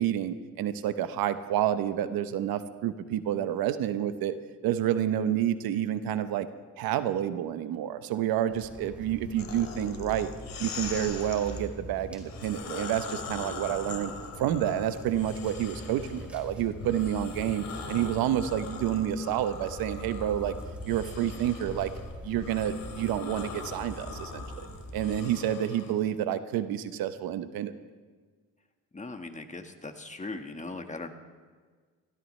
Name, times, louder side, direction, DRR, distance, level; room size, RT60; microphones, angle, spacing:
voice 1, 0.0-4.3 4.6-6.5 6.8-10.3 10.6-14.1 14.4-20.5 20.8-21.9 22.2-24.4 24.9-27.7, right 11 dB, 85° right, 11 dB, 0.9 m, -29 dB
sound 1, 8.5-25.2, equal, 5° right, 4.2 m, -43 dB
sound 2, 9.4-11.6 12.2-16.3 16.8-25.9, left 5 dB, 70° left, 2.7 m, -42 dB
voice 2, 28.9-31.1, left 3 dB, 20° left, 6 dB, 1.6 m, -39 dB
23.0 x 16.0 x 3.3 m, 1.5 s
cardioid pair, 85°, 35 cm